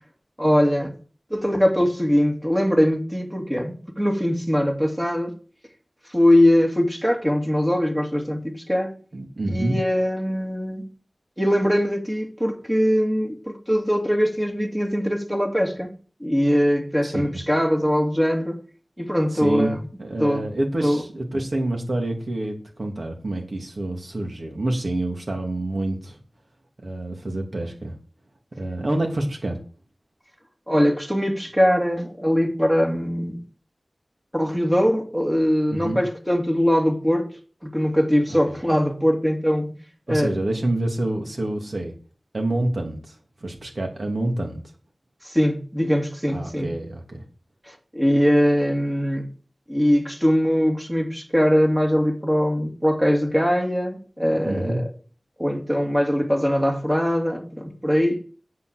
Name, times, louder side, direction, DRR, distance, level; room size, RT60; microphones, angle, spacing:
voice 1, 0.4-0.9 1.3-5.3 6.1-8.9 9.5-10.8 11.4-15.9 16.2-18.6 19.0-19.8 20.2-20.4 20.8-21.0 30.7-33.4 34.3-37.3 37.6-39.7 40.1-40.3 45.2-46.7 47.7-49.3 49.7-54.8 55.4-58.2, equal, 10° right, 2.7 m, -21 dB
voice 2, 9.1-9.8 17.0-17.4 19.3-26.2 26.8-28.0 28.5-29.6 35.7-36.0 38.3-38.6 40.1-41.9 42.3-44.6 46.3-47.2 54.4-54.8, right 1 dB, 65° right, 2.8 m, -27 dB
8.8 x 7.6 x 6.7 m
wide cardioid pair, 55°, 0 cm